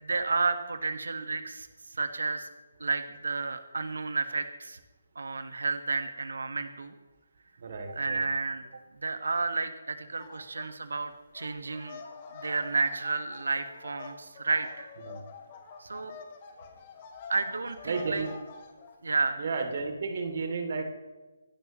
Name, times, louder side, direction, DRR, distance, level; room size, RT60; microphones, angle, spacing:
voice 1, 0.0-2.5 2.8-4.8 5.1-6.9 7.9-8.6 9.0-12.0 12.3-14.9 15.8-16.2 17.3-18.2 19.0-19.4, right 3 dB, 70° right, 9 dB, 1.6 m, -31 dB
voice 2, 7.6-8.2 15.0-15.2 17.8-18.3 19.4-20.8, right 4 dB, 50° right, 5 dB, 2.9 m, -32 dB
sound 1, 10.2-10.7 11.0-19.0, left 5 dB, 35° left, 2.5 m, -47 dB
27.0 x 12.0 x 3.2 m, 1.3 s
figure-of-eight pair, 145°, 0 cm